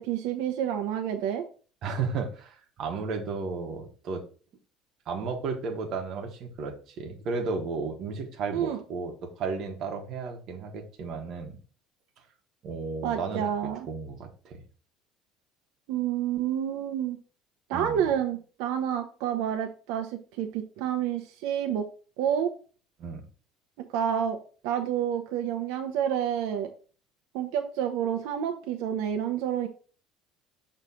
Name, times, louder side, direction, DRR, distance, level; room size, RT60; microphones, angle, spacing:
voice 1, 0.0-1.4 8.5-8.8 13.0-13.9 15.9-17.2 17.7-21.9 22.2-22.5 23.8-24.4 24.6-26.7 27.3-29.7, right 9 dB, 75° right, 4 dB, 0.8 m, -29 dB
voice 2, 1.8-4.2 5.0-11.6 12.6-14.6 17.7-18.0 23.0-23.2, right 4 dB, 40° right, 2 dB, 1.3 m, -34 dB
6.3 x 3.2 x 5.6 m, 0.39 s
cardioid pair, 175°, 0 cm